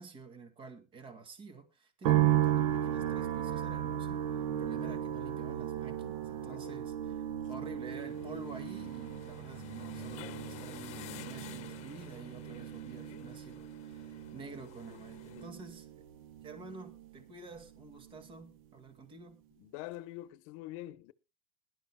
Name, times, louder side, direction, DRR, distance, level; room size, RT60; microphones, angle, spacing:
voice 1, 0.0-16.0 16.4-19.4, right 4 dB, 30° right, 2.0 m, -49 dB
sound 1, 2.0-17.3 17.6-18.4, right 11 dB, 80° right, 1.0 m, -35 dB
voice 2, 6.4-6.7 19.6-21.1, left 16 dB, 65° left, 0.8 m, -45 dB
sound 2, 7.9-15.5, left 14 dB, 40° left, 1.1 m, -51 dB
21.0 x 11.5 x 2.2 m
supercardioid pair, 150°, 17 cm